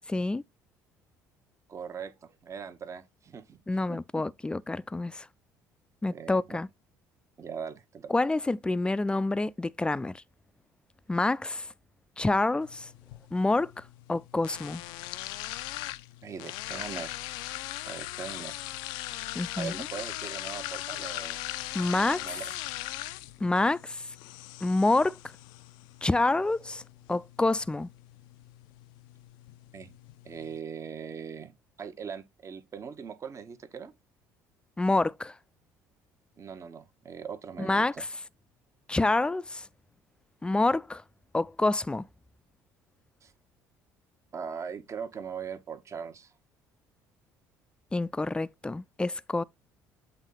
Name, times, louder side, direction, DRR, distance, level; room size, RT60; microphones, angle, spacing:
voice 1, 0.1-0.4 3.7-5.3 6.0-6.7 8.1-10.2 11.1-11.7 12.2-12.9 13.3-13.8 14.1-14.8 19.4-19.8 21.7-22.2 23.4-24.1 24.6-25.2 26.0-26.8 27.1-27.9 34.8-35.4 37.6-38.1 38.9-39.7 40.4-41.0 41.3-42.1 47.9-49.4, left 2 dB, 10° left, 0.4 m, -27 dB
voice 2, 1.7-3.6 3.9-4.2 6.1-6.6 7.4-8.1 16.2-17.1 17.8-18.6 19.6-21.4 22.1-22.5 29.7-29.9 30.2-31.5 31.8-33.9 36.4-38.0 43.2-43.3 44.3-46.3, right 6 dB, 40° right, 1.1 m, -40 dB
sound 1, 12.6-30.6, left 17 dB, 70° left, 0.4 m, -40 dB
8.0 x 3.6 x 3.9 m
hypercardioid pair, 60°, 8 cm